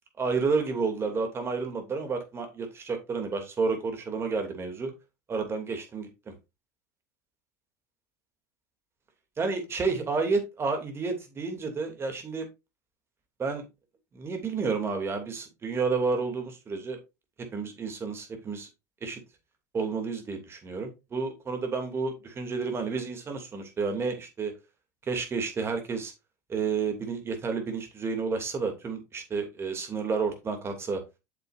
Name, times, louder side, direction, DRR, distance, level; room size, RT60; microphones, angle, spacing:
voice 1, 0.2-4.9 5.3-6.3 9.4-12.5 13.4-13.6 14.1-17.0 17.5-18.7 19.0-19.2 19.7-24.5 25.1-26.1 26.5-31.0, right 4 dB, 30° right, 2.8 m, -30 dB
8.7 x 6.7 x 2.7 m
hypercardioid pair, 80°, 9 cm